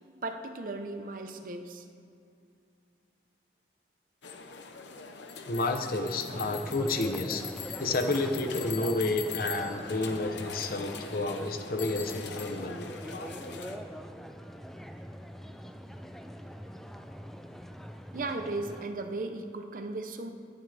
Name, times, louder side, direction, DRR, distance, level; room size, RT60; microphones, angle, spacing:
voice 1, 0.2-1.8 18.1-20.3, right 2 dB, 50° right, 6 dB, 0.8 m, -36 dB
sound 1, 4.2-13.8, left 6 dB, 80° left, 0.9 m, -42 dB
voice 2, 5.5-7.4 7.8-12.8, left 2 dB, 50° left, 6 dB, 0.8 m, -30 dB
sound 2, 6.3-18.8, equal, ahead, 0.4 m, -43 dB
18.5 x 11.0 x 3.4 m, 2.3 s
head